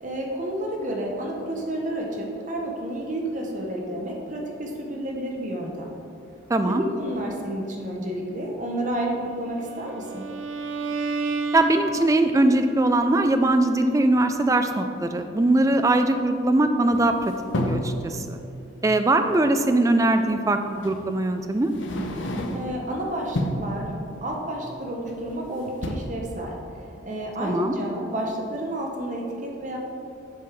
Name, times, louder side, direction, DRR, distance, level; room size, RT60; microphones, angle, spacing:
voice 1, 0.0-5.9 6.6-10.3 22.5-23.9 24.2-26.6 27.0-29.8, right 1 dB, 40° right, 0 dB, 0.8 m, -30 dB
voice 2, 6.5-6.8 11.5-18.4 18.8-21.7 27.4-27.8, right 2 dB, 15° right, 7 dB, 0.3 m, -21 dB
Bowed string instrument, 9.4-12.5, right 4 dB, 80° right, 0.6 m, -31 dB
sound 1, 16.9-18.0 19.6-19.7 20.8-21.0 21.6-22.8 23.2-23.7 25.1-25.4 25.7-26.0, left 1 dB, 75° left, 0.8 m, -30 dB
7.5 x 5.4 x 4.7 m, 2.7 s
head